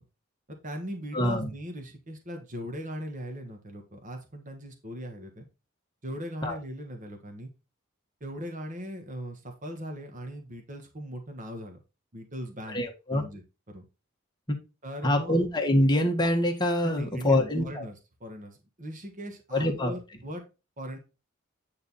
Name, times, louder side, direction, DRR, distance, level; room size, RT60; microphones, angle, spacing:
voice 1, 0.5-5.5 6.0-7.5 8.2-11.8 12.1-12.8 13.1-13.8 14.8-15.4 16.8-20.4 20.8-21.0, equal, 40° right, 4 dB, 1.6 m, -39 dB
voice 2, 1.1-1.5 6.4-6.6 12.7-13.2 14.5-14.6 15.0-17.8 19.5-19.9, left 1 dB, 20° left, 2 dB, 1.6 m, -25 dB
9.4 x 4.0 x 4.1 m, 0.28 s
head